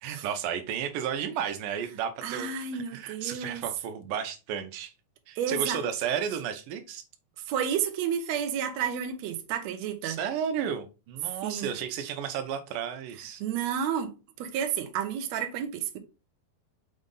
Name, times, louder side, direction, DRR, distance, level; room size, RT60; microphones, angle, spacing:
voice 1, 0.0-2.5 2.7-4.9 5.3-7.0 10.0-13.4, right 8 dB, 85° right, 2.4 m, -33 dB
voice 2, 2.2-3.6 5.4-5.8 7.5-10.2 11.4-11.7 13.4-16.0, right 8 dB, 70° right, 1.9 m, -31 dB
6.3 x 3.9 x 3.8 m
omnidirectional pair, 3.6 m